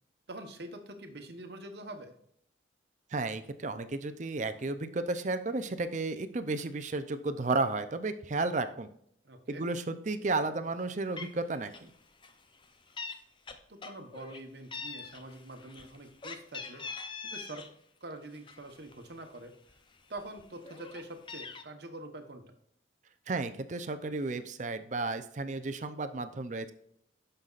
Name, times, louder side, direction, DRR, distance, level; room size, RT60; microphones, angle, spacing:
voice 1, 0.3-2.1 9.2-9.6 13.7-16.8 17.2-17.7 18.0-19.5 20.1-22.4, right 1 dB, 55° right, 6 dB, 1.0 m, -45 dB
voice 2, 3.1-8.9 9.5-11.9 23.3-26.7, right 3 dB, 40° right, 11 dB, 0.5 m, -33 dB
Meow, 10.8-10.9 11.2-11.4 11.7-12.0 12.2-13.2 13.5-14.4 14.7-17.7 18.1-19.2 19.7-19.8 20.1-21.6, left 4 dB, 25° left, 0.6 m, -43 dB
9.4 x 6.6 x 2.4 m, 0.67 s
head